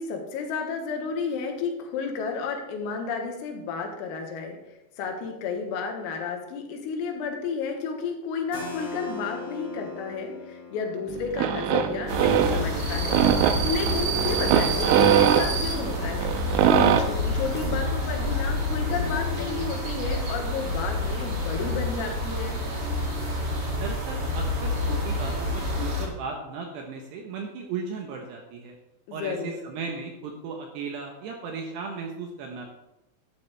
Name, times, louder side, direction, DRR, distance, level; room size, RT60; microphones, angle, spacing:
voice 1, 0.0-4.6 5.0-16.4 16.7-22.6 29.1-29.6, left 5 dB, 85° left, 3 dB, 4.2 m, -32 dB
Keyboard (musical), 8.5-14.1, left 3 dB, 35° left, 3.1 m, -41 dB
sound 1, 11.1-17.0, right 9 dB, 90° right, 3.3 m, -23 dB
sound 2, 12.1-26.0, left 1 dB, 55° right, 1.1 m, -28 dB
voice 2, 23.8-28.7 29.1-32.7, right 5 dB, 75° right, 2 dB, 2.6 m, -36 dB
12.0 x 12.0 x 3.3 m, 0.92 s
omnidirectional pair, 5.9 m